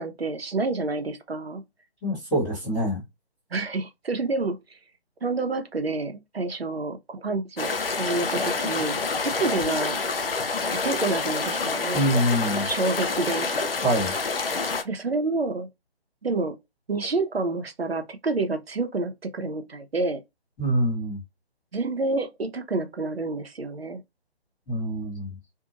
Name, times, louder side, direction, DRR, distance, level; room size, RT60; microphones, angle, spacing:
voice 1, 0.0-1.6 3.5-4.8 5.2-10.0 10.8-12.0 12.6-13.5 14.8-15.7 16.2-16.6 16.9-20.2 21.7-24.0, right 3 dB, 70° right, 0.8 m, -28 dB
voice 2, 2.0-3.0 11.9-12.7 13.8-14.1 20.6-21.2 24.7-25.4, equal, 5° left, 1.2 m, -25 dB
sound 1, 7.6-14.8, left 4 dB, 60° left, 0.6 m, -27 dB
2.7 x 2.6 x 2.5 m
figure-of-eight pair, 155°, 32 cm